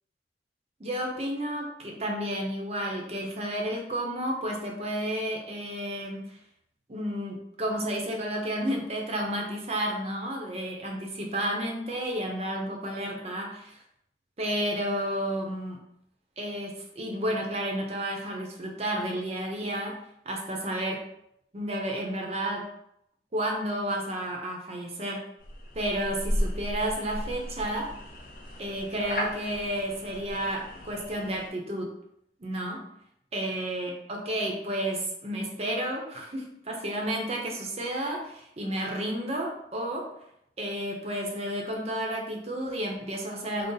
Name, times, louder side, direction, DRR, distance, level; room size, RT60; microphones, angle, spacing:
voice 1, 0.8-6.4 6.9-13.8 14.4-15.8 16.4-21.0 21.5-22.7 23.3-25.2 25.7-27.9 28.6-31.9 32.4-32.9 33.3-40.1 40.6-43.7, right 1 dB, 35° right, 1 dB, 0.6 m, -31 dB
sound 1, 25.4-31.5, equal, 50° left, 0.6 m, -35 dB
3.8 x 2.0 x 3.9 m, 0.75 s
head